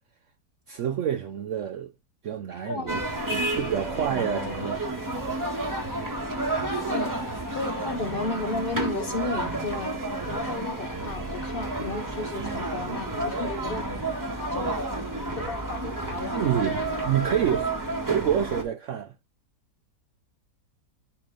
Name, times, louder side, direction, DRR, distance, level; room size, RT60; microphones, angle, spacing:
voice 1, 0.7-1.9 2.2-3.0 3.3-4.8 16.3-17.7 18.1-19.1, right 9 dB, 70° right, 0.7 m, -27 dB
voice 2, 2.6-3.0 6.9-7.1 7.5-9.9 10.2-13.9 14.5-15.0 15.4-16.3, left 3 dB, 45° left, 0.8 m, -33 dB
sound 1, 2.9-18.6, right 2 dB, 10° right, 1.4 m, -31 dB
9.8 x 3.3 x 3.8 m
omnidirectional pair, 1.7 m